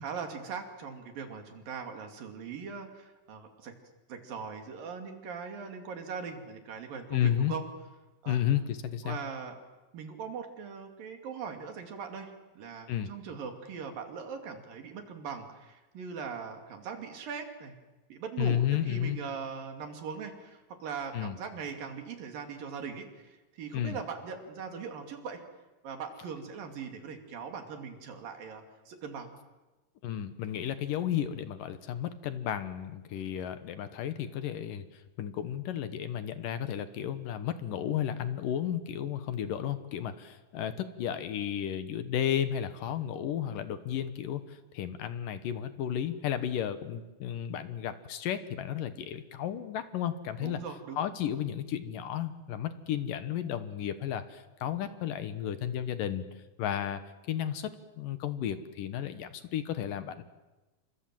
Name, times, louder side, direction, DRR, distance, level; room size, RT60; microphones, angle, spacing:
voice 1, 0.0-3.7 4.1-7.6 8.2-8.4 9.0-9.6 9.9-17.7 18.1-25.4 25.8-29.3 50.4-51.1, right 6 dB, 70° right, 5 dB, 4.2 m, -40 dB
voice 2, 7.1-7.5 8.3-9.2 12.9-13.1 18.4-19.2 21.1-21.4 23.7-24.0 30.0-50.6 51.0-57.7 58.0-60.2, left 10 dB, 70° left, 11 dB, 2.7 m, -33 dB
29.0 x 25.5 x 7.6 m, 1.1 s
omnidirectional pair, 4.2 m